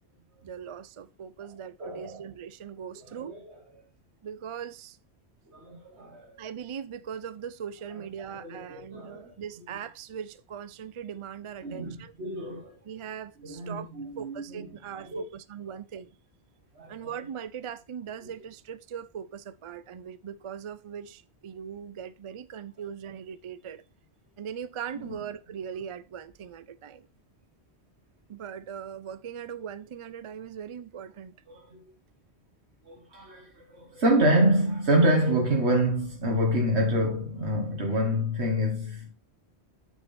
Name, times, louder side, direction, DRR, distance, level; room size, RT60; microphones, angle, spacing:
voice 1, 0.4-3.3 4.2-5.0 6.4-12.1 12.8-13.9 14.2-16.1 16.9-23.8 24.4-27.1 28.3-31.3, right 8 dB, 55° right, 0.3 m, -40 dB
voice 2, 1.8-2.3 3.1-3.4 5.5-6.3 8.3-9.3 11.6-12.7 13.4-14.7 14.9-15.2 16.8-17.0 25.0-25.1 31.5-31.8 32.9-39.1, right 1 dB, 80° right, 1.8 m, -27 dB
8.6 x 4.8 x 4.1 m
omnidirectional pair, 1.1 m